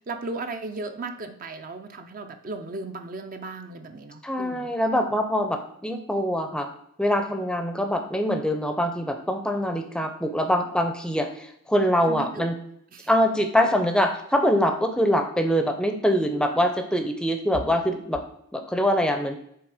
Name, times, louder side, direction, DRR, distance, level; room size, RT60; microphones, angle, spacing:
voice 1, 0.0-4.7 12.1-12.6 12.9-13.1, right 3 dB, 40° right, 7 dB, 0.5 m, -36 dB
voice 2, 4.2-6.7 7.0-12.6 13.1-18.2 18.5-19.3, equal, 5° left, 6 dB, 0.6 m, -24 dB
7.9 x 3.4 x 4.9 m, 0.71 s
head